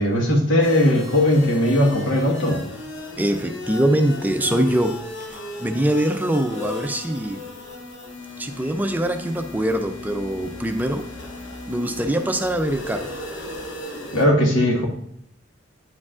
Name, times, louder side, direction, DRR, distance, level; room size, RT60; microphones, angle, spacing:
voice 1, 0.0-2.6 14.1-14.9, left 1 dB, 90° left, 1 dB, 1.4 m, -18 dB
sound 1, 0.6-14.2, left 2 dB, 65° left, 1.1 m, -36 dB
voice 2, 3.2-4.9 5.3-7.4 8.4-11.0 11.7-13.1, right 1 dB, 10° right, 6 dB, 0.4 m, -23 dB
9.4 x 4.9 x 2.4 m, 0.69 s
head